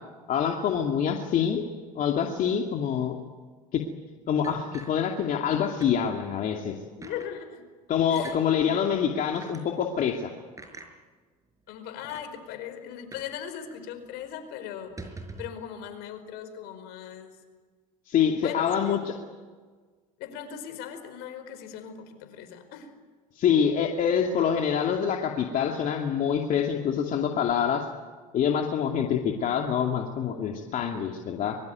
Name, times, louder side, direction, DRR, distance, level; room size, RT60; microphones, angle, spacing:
voice 1, 0.3-1.6 2.0-3.2 3.7-3.8 4.3-6.7 7.9-10.3 18.1-19.0 23.4-27.8 28.3-31.6, left 8 dB, 50° left, 2 dB, 2.5 m, -26 dB
sound 1, 4.4-5.5 5.8-6.0 6.4-6.5 7.0-7.3 8.1-8.4 9.3-9.6 10.6-10.9 11.7-11.8 12.0-12.3 13.1-13.4 13.6-13.7 14.1-14.3 14.8-15.6, right 3 dB, 20° right, 5.4 m, -44 dB
voice 2, 7.0-7.6 8.1-8.8 11.7-15.0 15.4-17.4 18.4-19.0 20.2-22.9, left 9 dB, 65° left, 9 dB, 4.9 m, -39 dB
24.0 x 22.5 x 9.5 m, 1.5 s
hypercardioid pair, 90°, 18 cm